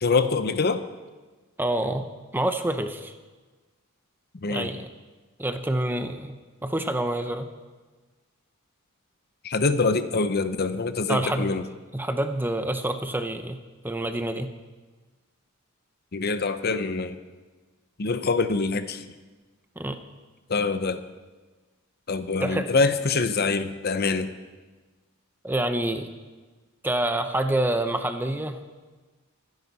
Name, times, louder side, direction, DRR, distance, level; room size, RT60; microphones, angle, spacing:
voice 1, 0.0-0.8 4.4-4.7 9.4-11.6 16.1-17.2 18.0-19.1 20.5-21.0 22.1-24.3, left 4 dB, 45° left, 11 dB, 0.7 m, -25 dB
voice 2, 1.6-2.1 2.3-3.1 4.5-4.9 5.4-6.4 6.6-7.5 11.1-11.5 11.9-14.5 19.8-20.0 22.4-22.7 25.4-26.1 26.8-28.6, right 1 dB, 10° right, 7 dB, 0.7 m, -27 dB
24.5 x 10.5 x 4.1 m, 1.3 s
head